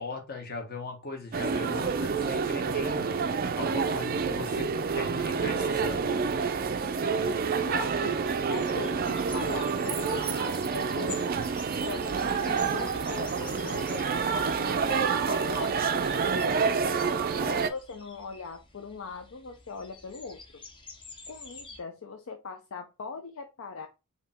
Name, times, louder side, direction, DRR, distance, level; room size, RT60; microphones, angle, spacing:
voice 1, 0.0-6.2, left 2 dB, 45° left, 3 dB, 1.2 m, -39 dB
sound 1, 1.3-17.7, right 5 dB, 40° right, 0.4 m, -28 dB
sound 2, 6.7-21.8, left 3 dB, 20° left, 0.8 m, -48 dB
voice 2, 7.2-11.4 11.8-15.7 16.3-20.4 21.3-23.9, left 4 dB, 60° left, 5 dB, 0.5 m, -40 dB
4.8 x 2.8 x 3.5 m, 0.27 s
head